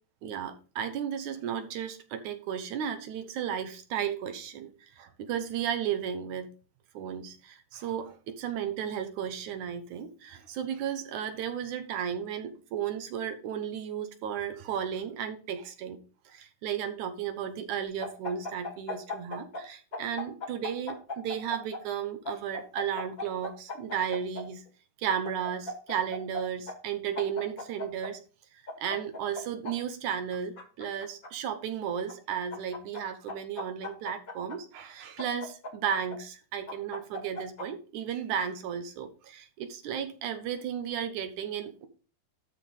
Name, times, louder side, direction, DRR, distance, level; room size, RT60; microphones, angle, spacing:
voice 1, 0.2-6.5 6.9-16.0 16.3-24.6 25.0-28.2 28.8-41.9, right 8 dB, 70° right, 8 dB, 2.1 m, -34 dB
sound 1, 18.0-19.6 19.9-21.8 22.3-24.4 25.2-26.4 26.7-26.8 27.2-28.1 28.7-29.7 30.3-31.3 32.1-33.0 33.3-34.6 35.2-36.2 36.7-37.7, left 2 dB, 35° left, 1.6 m, -37 dB
12.5 x 5.2 x 3.7 m, 0.37 s
omnidirectional pair, 4.2 m